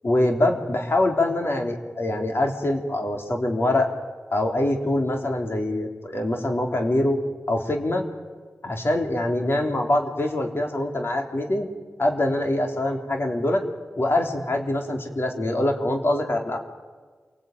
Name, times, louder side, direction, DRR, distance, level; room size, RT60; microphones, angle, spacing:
voice 1, 0.0-3.9 4.3-7.2 7.5-8.0 8.6-11.7 12.0-13.6 14.0-16.6, left 1 dB, 55° left, 3 dB, 3.6 m, -24 dB
28.0 x 18.5 x 9.3 m, 1.5 s
cardioid pair, 40°, 5 cm